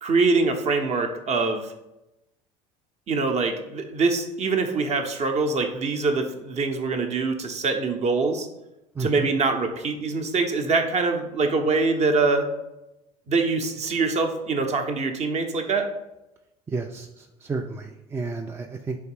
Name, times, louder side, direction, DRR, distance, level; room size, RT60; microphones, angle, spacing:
voice 1, 0.0-1.6 3.1-8.5 9.0-12.5 13.3-15.9, right 3 dB, 35° right, 5 dB, 0.7 m, -24 dB
voice 2, 8.9-9.3 16.7-19.0, right 3 dB, 15° right, 3 dB, 0.3 m, -32 dB
3.6 x 3.2 x 4.5 m, 0.93 s
figure-of-eight pair, 65°, 19 cm